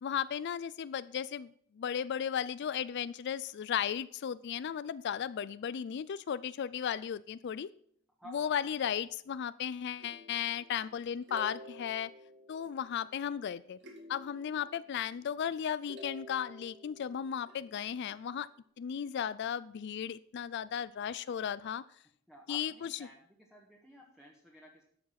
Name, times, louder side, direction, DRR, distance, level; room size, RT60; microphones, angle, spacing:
voice 1, 0.0-1.5 1.8-7.7 8.3-12.1 12.5-13.8 14.1-18.5 18.8-21.8 22.5-23.0, left 8 dB, 55° left, 17 dB, 0.3 m, -35 dB
voice 2, 8.2-9.1 22.3-23.2 23.5-24.8, equal, 5° right, -3 dB, 1.5 m, -54 dB
sound 1, 10.0-13.3 13.8-15.5 15.8-18.2, left 1 dB, 60° right, 2.2 m, -52 dB
12.0 x 7.1 x 5.8 m, 0.66 s
head